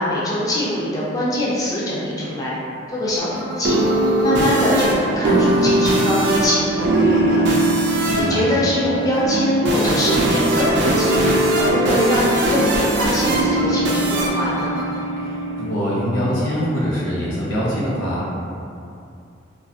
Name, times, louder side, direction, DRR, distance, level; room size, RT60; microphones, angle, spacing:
voice 1, 0.0-2.6 2.9-3.8 4.2-7.4 8.2-14.7, left 1 dB, 20° left, -7 dB, 0.4 m, -23 dB
sound 1, 3.2-15.7, right 1 dB, 65° right, 0.4 m, -20 dB
voice 2, 8.1-8.5 15.2-18.3, equal, 80° left, -7 dB, 0.8 m, -23 dB
2.4 x 2.3 x 2.6 m, 2.5 s
head